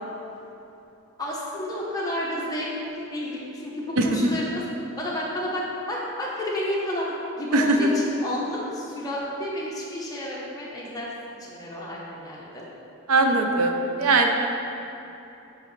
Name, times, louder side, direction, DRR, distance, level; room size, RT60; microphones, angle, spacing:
voice 1, 1.2-4.6 5.0-7.1 7.4-11.1 11.5-12.6, left 1 dB, 15° left, -5 dB, 0.9 m, -31 dB
voice 2, 7.5-8.0 13.1-14.3, right 2 dB, 85° right, 3 dB, 0.6 m, -20 dB
7.6 x 4.7 x 3.2 m, 2.9 s
head